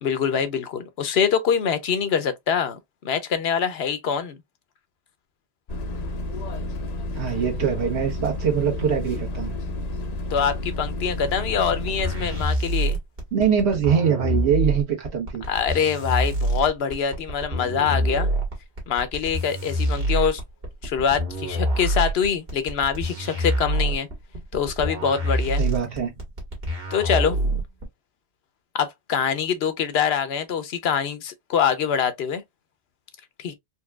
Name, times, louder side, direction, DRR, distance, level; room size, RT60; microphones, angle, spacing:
voice 1, 0.0-2.8 3.0-4.4 10.3-13.0 15.5-18.3 18.9-20.4 20.8-24.1 24.5-25.6 26.9-27.4 28.7-32.4 33.4-33.5, left 7 dB, 75° left, 0.9 m, -24 dB
sound 1, 5.7-12.5, left 1 dB, 45° left, 0.6 m, -31 dB
voice 2, 7.1-9.5 13.3-15.4 25.6-26.2, right 7 dB, 80° right, 1.4 m, -23 dB
sound 2, 11.9-27.8, right 1 dB, 60° right, 1.6 m, -26 dB
4.3 x 2.3 x 2.2 m
omnidirectional pair, 1.1 m